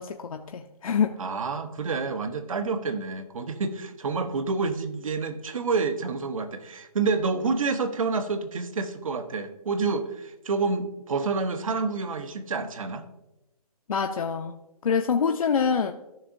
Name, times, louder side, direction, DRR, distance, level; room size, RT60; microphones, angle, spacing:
voice 1, 0.0-1.2 13.9-14.5 14.8-15.9, left 6 dB, 60° left, 4 dB, 0.6 m, -25 dB
voice 2, 1.2-13.1, right 4 dB, 60° right, 11 dB, 0.9 m, -28 dB
14.0 x 5.9 x 2.6 m, 0.95 s
hypercardioid pair, 170°, 20 cm